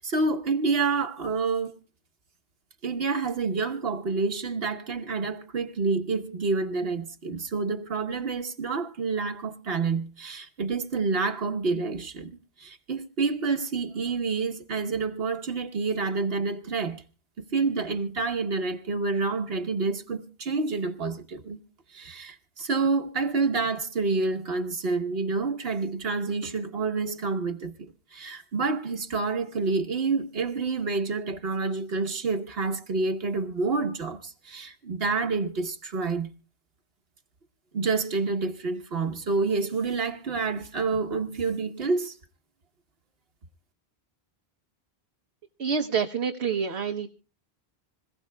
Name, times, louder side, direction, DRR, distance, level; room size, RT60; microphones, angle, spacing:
voice 1, 0.0-1.8 2.8-12.3 12.6-17.0 17.4-21.6 21.9-36.3 37.7-42.2, right 4 dB, 70° right, 1.3 m, -28 dB
voice 2, 45.6-47.1, right 6 dB, 85° right, 1.2 m, -27 dB
26.0 x 16.0 x 2.2 m
omnidirectional pair, 1.1 m